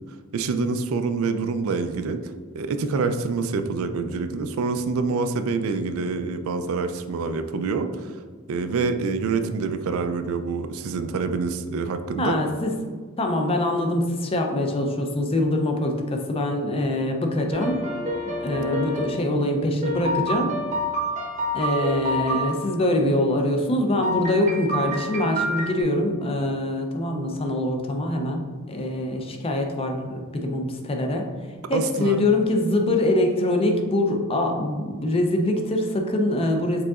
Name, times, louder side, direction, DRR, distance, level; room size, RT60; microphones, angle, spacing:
voice 1, 0.3-8.2 8.5-12.4 31.7-32.2, right 4 dB, 65° right, 9 dB, 0.3 m, -26 dB
voice 2, 12.2-12.8 13.2-17.8 18.3-20.5 21.5-31.3 31.7-36.8, left 1 dB, 25° left, 3 dB, 0.4 m, -24 dB
sound 1, 17.5-19.2 19.8-22.5 24.0-25.8, equal, 30° right, 0.7 m, -28 dB
4.8 x 3.7 x 2.4 m, 1.5 s
head